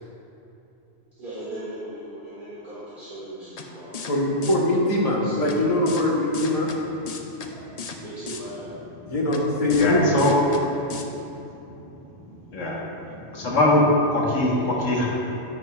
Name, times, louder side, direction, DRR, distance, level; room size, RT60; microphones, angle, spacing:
voice 1, 1.2-4.1 5.2-5.7 8.0-8.7 12.9-13.0, right 1 dB, 40° right, -10 dB, 1.8 m, -38 dB
sound 1, 3.6-3.7 3.9-4.1 4.4-4.6 5.5-5.6 5.9-6.0 6.3-6.8 7.1-7.5 7.8-8.0 8.3-8.4 9.3-9.4 9.7-9.9 10.2-10.6 10.9-11.0, left 5 dB, 50° left, 0.5 m, -35 dB
voice 2, 4.1-6.7 9.1-10.1, left 1 dB, 30° left, -3 dB, 1.3 m, -22 dB
voice 3, 9.8-10.7 12.5-12.8 13.3-13.9 14.1-15.1, left 1 dB, 75° left, -4 dB, 1.7 m, -21 dB
9.9 x 9.3 x 2.4 m, 2.9 s
omnidirectional pair, 1.3 m